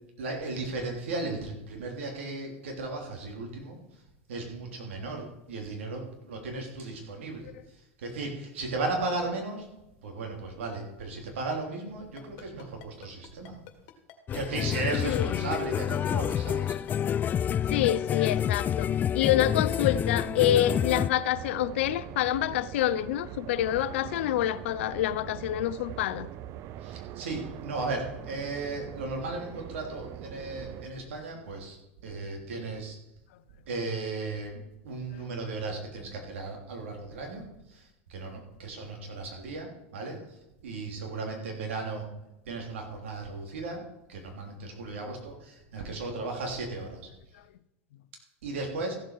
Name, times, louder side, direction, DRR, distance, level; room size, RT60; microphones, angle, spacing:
voice 1, 0.2-3.8 4.3-7.5 8.0-9.7 10.0-13.6 14.3-16.7 26.8-31.8 32.0-33.0 33.6-42.1 42.4-43.8 44.1-47.0 48.4-48.9, right 3 dB, 80° right, 3.3 m, -35 dB
Ringtone, 12.2-18.9, left 14 dB, 55° left, 1.9 m, -48 dB
sound 1, 14.3-21.1, left 9 dB, 25° left, 0.3 m, -28 dB
voice 2, 15.0-15.5 17.7-26.3, left 12 dB, 70° left, 0.6 m, -27 dB
sound 2, 19.6-30.9, right 11 dB, 45° right, 0.6 m, -42 dB
15.0 x 7.6 x 4.8 m
hypercardioid pair, 100°, 7 cm